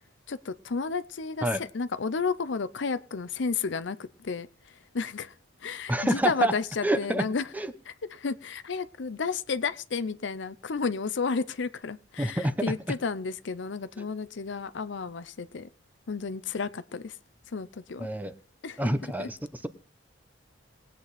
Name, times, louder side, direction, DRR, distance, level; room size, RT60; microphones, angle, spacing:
voice 1, 0.3-4.5 4.9-5.3 5.6-7.5 7.9-15.7 16.1-17.1 17.5-18.1 18.6-18.8 19.2-19.3, left 5 dB, 65° left, 0.6 m, -32 dB
voice 2, 5.9-6.5 6.8-7.2 7.5-7.7 12.2-12.7 14.0-14.1 18.0-18.3 18.8-19.7, right 1 dB, 10° right, 0.9 m, -27 dB
20.0 x 8.5 x 4.2 m
head